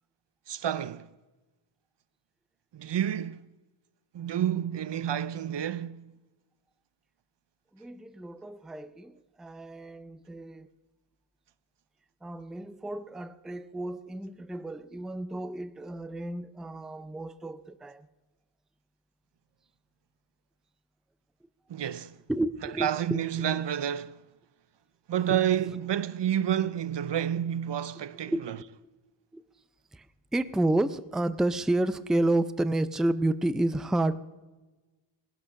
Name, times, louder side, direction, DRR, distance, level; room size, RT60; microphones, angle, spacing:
voice 1, 0.5-1.1 2.7-3.4 4.1-6.0 21.7-22.1 22.8-24.2 25.1-28.3, right 10 dB, 60° right, 0.6 m, -29 dB
voice 2, 7.7-10.7 12.2-18.1 22.3-23.2 28.3-28.4 29.3-29.4 29.9-30.1 30.3-34.2, right 1 dB, ahead, 0.4 m, -30 dB
18.5 x 11.0 x 6.4 m
wide cardioid pair, 125°, 48 cm